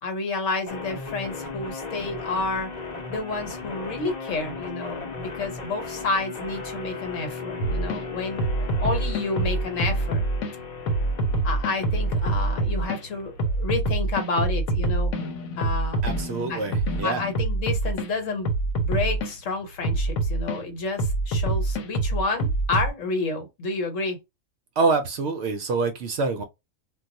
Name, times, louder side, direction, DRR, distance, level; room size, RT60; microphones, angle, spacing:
voice 1, 0.0-2.7 3.1-10.3 11.4-15.1 15.6-16.0 16.5-16.6 17.0-18.5 18.8-24.2, left 3 dB, 70° left, 1.2 m, -30 dB
sound 1, 0.7-13.7, left 4 dB, 40° left, 0.8 m, -37 dB
sound 2, 7.6-8.0 8.4-10.5 10.9-13.0 13.4-18.1 18.4-19.3 19.8-20.6 21.0-22.9, right 2 dB, 85° left, 1.1 m, -25 dB
voice 2, 16.0-17.2 24.8-26.4, right 4 dB, 65° right, 0.7 m, -26 dB
2.3 x 2.3 x 3.9 m
omnidirectional pair, 1.4 m